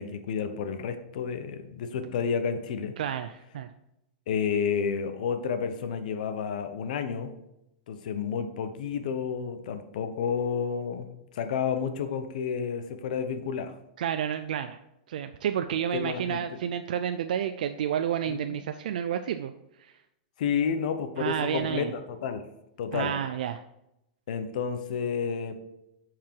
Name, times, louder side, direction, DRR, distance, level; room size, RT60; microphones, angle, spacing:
voice 1, 0.0-3.0 4.3-7.4 7.9-11.1 11.3-13.7 15.9-16.4 18.3-18.6 20.4-22.5 22.8-23.1 24.3-25.6, left 6 dB, 70° left, 9 dB, 1.0 m, -30 dB
voice 2, 3.0-3.7 14.0-14.8 15.1-19.5 19.8-19.9 21.2-21.9 22.9-23.6, right 9 dB, 80° right, 8 dB, 0.4 m, -30 dB
9.2 x 4.8 x 4.7 m, 0.86 s
supercardioid pair, 140°, 4 cm